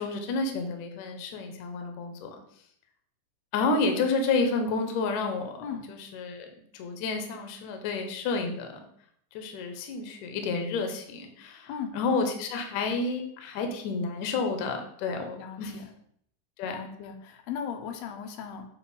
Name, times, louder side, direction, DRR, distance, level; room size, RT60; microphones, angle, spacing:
voice 1, 0.0-2.3 3.5-6.5 6.7-8.8 9.3-15.8 16.6-16.8, left 3 dB, 75° left, 5 dB, 1.9 m, -30 dB
voice 2, 15.4-15.8 16.6-18.7, left 7 dB, 90° left, 5 dB, 2.5 m, -37 dB
7.1 x 2.4 x 5.4 m, 0.68 s
omnidirectional pair, 4.0 m